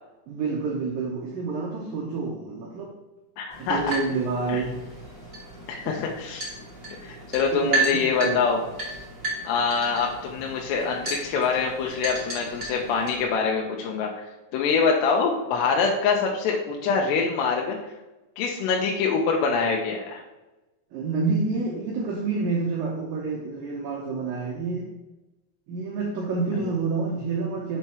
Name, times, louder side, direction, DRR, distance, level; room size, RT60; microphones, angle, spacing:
voice 1, 0.3-3.0 3.6-4.8 5.9-6.0 7.5-8.4 20.9-24.9 25.7-27.8, right 4 dB, 90° right, -1 dB, 2.0 m, -28 dB
voice 2, 3.4-4.0 4.5-4.6 5.7-6.5 7.0-8.6 9.4-14.2 14.5-17.8 18.4-20.2 26.6-26.7, left 5 dB, 80° left, 0 dB, 2.6 m, -25 dB
sound 1, 3.5-13.2, right 2 dB, 25° right, 1.3 m, -33 dB
6.7 x 4.3 x 4.6 m, 1.1 s
omnidirectional pair, 5.3 m